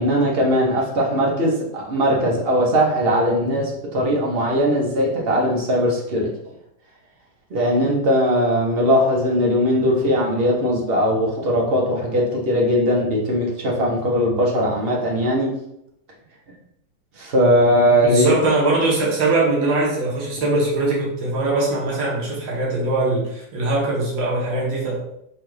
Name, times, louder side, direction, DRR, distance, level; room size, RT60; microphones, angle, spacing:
voice 1, 0.0-6.3 7.5-15.5 17.2-18.3, equal, 60° right, -2 dB, 0.6 m, -19 dB
voice 2, 18.0-25.0, right 2 dB, 75° right, -4 dB, 1.8 m, -21 dB
4.7 x 2.3 x 3.1 m, 0.77 s
omnidirectional pair, 2.1 m